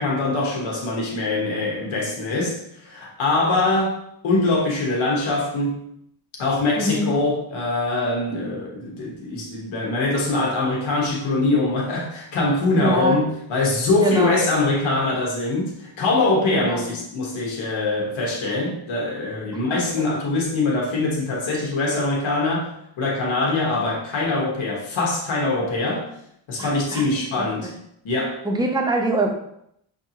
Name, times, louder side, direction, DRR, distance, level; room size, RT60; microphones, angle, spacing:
voice 1, 0.0-4.0 4.2-5.8 6.4-22.7 23.0-26.1 26.5-27.7 28.0-28.4, left 2 dB, 75° left, -3 dB, 1.3 m, -23 dB
voice 2, 6.7-7.1 12.8-13.2 14.0-14.4 16.5-16.9 19.7-20.1 26.6-27.1 27.4-27.7 28.4-29.3, right 2 dB, 10° right, 1 dB, 0.6 m, -24 dB
5.3 x 2.7 x 2.8 m, 0.74 s
cardioid pair, 95°, 48 cm